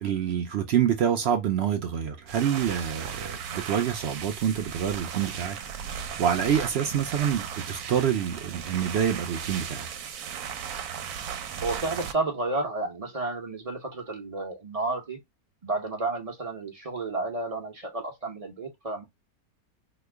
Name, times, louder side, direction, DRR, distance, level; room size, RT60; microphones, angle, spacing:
voice 1, 0.0-9.9, right 8 dB, 65° right, 0.6 m, -27 dB
sound 1, 2.2-12.1, right 7 dB, 90° right, 1.1 m, -36 dB
voice 2, 11.6-15.2 15.6-19.1, right 2 dB, 30° right, 0.8 m, -31 dB
3.0 x 2.3 x 3.4 m
omnidirectional pair, 1.6 m